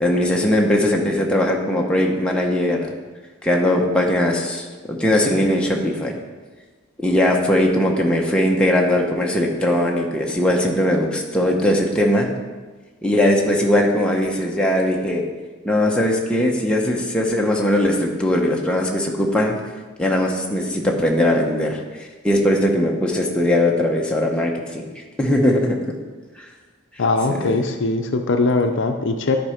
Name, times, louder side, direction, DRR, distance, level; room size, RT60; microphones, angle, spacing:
voice 1, 0.0-2.9 3.4-6.2 7.0-12.3 13.0-15.2 15.6-19.6 20.0-21.8 22.2-24.8 25.2-26.0 27.3-27.6, left 1 dB, 5° left, -1 dB, 0.8 m, -19 dB
voice 2, 27.0-29.4, left 3 dB, 60° left, 5 dB, 0.6 m, -20 dB
10.5 x 4.3 x 5.0 m, 1.3 s
head